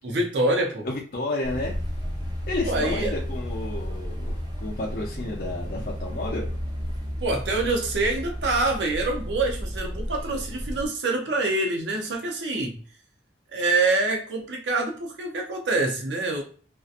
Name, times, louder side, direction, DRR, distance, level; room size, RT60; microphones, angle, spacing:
voice 1, 0.0-0.9 2.6-3.1 7.2-12.8 13.5-16.4, right 2 dB, 80° right, 2 dB, 0.6 m, -26 dB
voice 2, 0.8-1.7 2.5-6.5, left 2 dB, 55° left, -2 dB, 0.5 m, -31 dB
sound 1, 1.4-10.9, equal, 25° right, 0.6 m, -32 dB
2.6 x 2.1 x 2.4 m, 0.41 s
head